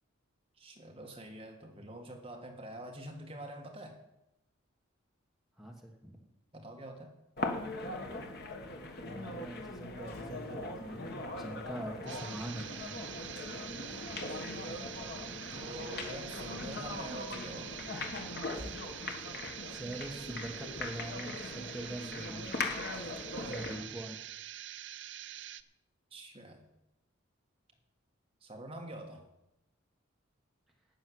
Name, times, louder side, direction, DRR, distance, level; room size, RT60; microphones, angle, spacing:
voice 1, 0.6-4.0 6.5-7.1 14.3-15.0 15.5-17.8 26.1-26.6 28.4-29.3, right 1 dB, 25° right, 2 dB, 1.5 m, -46 dB
voice 2, 5.6-6.2 8.6-12.9 19.7-22.4 23.5-24.2, right 1 dB, ahead, -1 dB, 1.4 m, -44 dB
sound 1, 7.4-23.9, left 2 dB, 50° left, 1.4 m, -40 dB
Engine, 9.9-20.8, right 2 dB, 90° left, 5.0 m, -54 dB
sound 2, 12.1-25.6, right 11 dB, 60° right, 0.5 m, -45 dB
12.0 x 6.4 x 9.4 m, 0.91 s
head